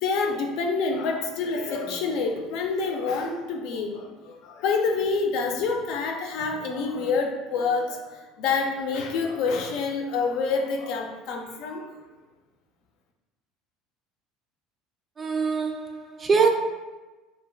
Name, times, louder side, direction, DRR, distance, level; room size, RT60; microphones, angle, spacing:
voice 1, 0.0-8.1 8.4-11.9, left 4 dB, 70° left, 0.4 m, -27 dB
voice 2, 15.2-16.5, right 5 dB, 30° right, 0.4 m, -23 dB
2.4 x 2.2 x 3.2 m
supercardioid pair, 90°, 0 cm